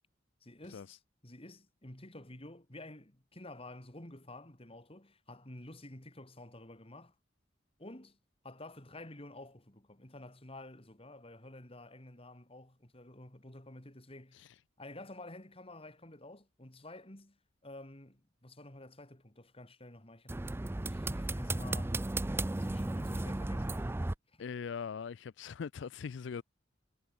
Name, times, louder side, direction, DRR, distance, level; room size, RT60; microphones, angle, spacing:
voice 1, 0.4-7.1 7.8-8.2 8.4-14.4 14.8-17.4 17.6-20.3 20.8-22.0 22.5-23.9 24.3-24.4, left 1 dB, 30° left, 3.3 m, -51 dB
sound 1, 20.3-24.1, right 2 dB, 10° right, 0.4 m, -35 dB
voice 2, 24.4-26.4, left 6 dB, 65° left, 0.4 m, -41 dB
head